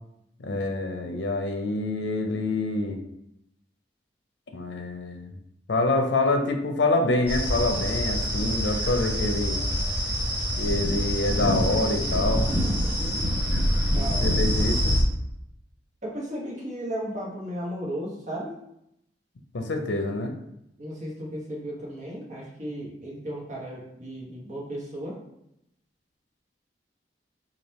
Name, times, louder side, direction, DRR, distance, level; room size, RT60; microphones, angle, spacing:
voice 1, 0.4-3.0 4.5-5.3 5.7-9.6 10.6-12.5 14.2-15.0 19.5-20.3, left 2 dB, 85° left, 5 dB, 0.5 m, -26 dB
sound 1, 7.3-15.0, equal, 10° right, 0.9 m, -25 dB
voice 2, 13.8-14.4 16.0-18.6 20.8-25.2, equal, 45° right, -3 dB, 1.0 m, -35 dB
3.3 x 2.5 x 4.1 m, 0.79 s
head